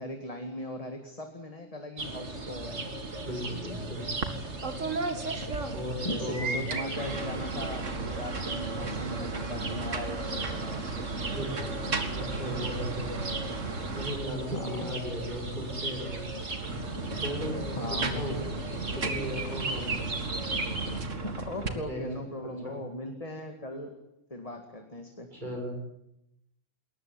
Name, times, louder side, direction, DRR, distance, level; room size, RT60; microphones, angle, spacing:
voice 1, 0.0-2.8 6.0-10.9 14.5-14.9 17.8-18.2 21.2-23.9 24.3-25.3, left 1 dB, 30° left, 5 dB, 2.2 m, -39 dB
sound 1, 2.0-21.0, right 2 dB, 65° right, 2.8 m, -36 dB
voice 2, 3.2-4.0 5.7-6.6 7.1-7.3 11.3-11.8 12.1-13.2 13.9-16.2 17.1-20.0 21.6-22.0 22.6-22.8 25.3-25.8, equal, 40° right, 2 dB, 7.1 m, -37 dB
sound 2, 4.2-4.4 4.6-6.2 6.6-14.7 16.4-21.7, right 3 dB, 85° right, 2.4 m, -35 dB
21.0 x 19.5 x 9.8 m, 0.85 s
omnidirectional pair, 1.3 m